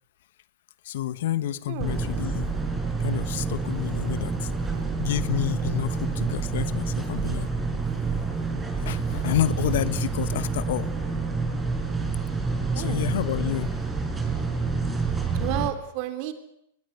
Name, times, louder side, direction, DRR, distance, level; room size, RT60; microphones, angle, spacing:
voice 1, 0.8-2.5 3.0-4.5 5.0-7.5 8.8-10.9 12.7-13.8, left 12 dB, 65° left, 16 dB, 1.2 m, -29 dB
voice 2, 1.7-2.2 12.7-13.0 15.3-16.3, right 13 dB, 50° right, 9 dB, 3.6 m, -32 dB
sound 1, 1.8-15.7, right 4 dB, 10° right, 5.7 m, -28 dB
22.5 x 21.0 x 8.2 m, 0.76 s
hypercardioid pair, 110°, 0 cm